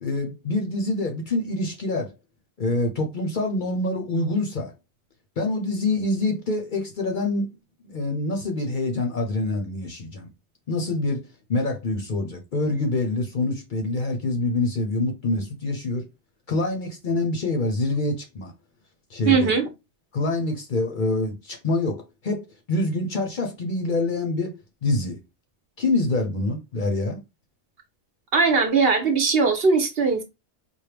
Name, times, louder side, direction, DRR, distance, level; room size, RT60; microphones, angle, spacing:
voice 1, 0.0-2.1 2.6-4.7 5.4-7.5 7.8-10.3 10.7-16.1 16.5-18.5 19.1-19.5 20.1-25.2 25.8-27.2, left 2 dB, 50° left, 0.7 m, -26 dB
voice 2, 19.2-19.7 28.3-30.2, right 4 dB, 60° right, 1.0 m, -20 dB
4.5 x 2.1 x 3.3 m
omnidirectional pair, 1.2 m